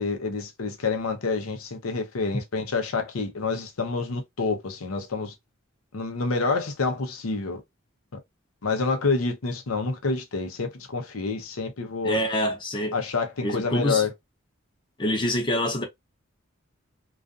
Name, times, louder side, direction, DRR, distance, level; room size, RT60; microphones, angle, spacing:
voice 1, 0.0-5.3 5.9-7.6 8.6-12.2 12.9-14.1, left 4 dB, 90° left, 0.7 m, -28 dB
voice 2, 12.0-13.0 13.4-14.0 15.0-15.8, equal, 25° left, 0.6 m, -26 dB
2.4 x 2.3 x 2.4 m
head